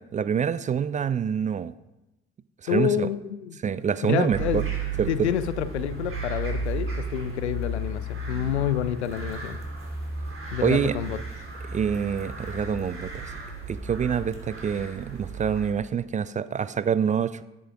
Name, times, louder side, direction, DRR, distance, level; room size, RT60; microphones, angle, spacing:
voice 1, 0.0-1.7 2.6-3.1 3.6-4.6 5.0-5.3 10.6-11.0 11.7-13.3 13.7-17.4, right 7 dB, 25° right, 16 dB, 0.4 m, -26 dB
voice 2, 2.7-3.6 4.0-4.7 5.1-9.6 10.5-11.2, left 10 dB, 80° left, 14 dB, 0.5 m, -28 dB
sound 1, 4.3-15.7, right 3 dB, 40° right, 3.1 m, -34 dB
14.5 x 11.0 x 2.4 m, 0.96 s
figure-of-eight pair, 45°, 33 cm